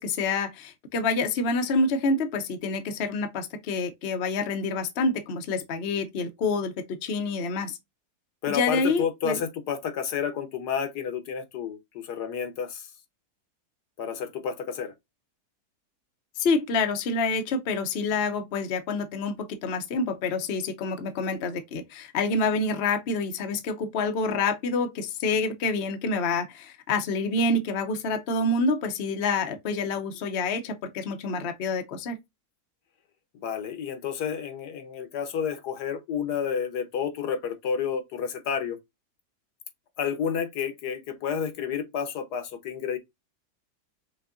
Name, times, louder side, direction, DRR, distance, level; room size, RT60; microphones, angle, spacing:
voice 1, 0.0-7.8 8.5-9.4 16.4-32.2, left 3 dB, 50° left, 0.8 m, -27 dB
voice 2, 8.4-12.9 14.0-14.9 33.3-38.8 40.0-43.0, left 7 dB, 75° left, 1.4 m, -30 dB
6.0 x 2.7 x 2.5 m
omnidirectional pair, 1.8 m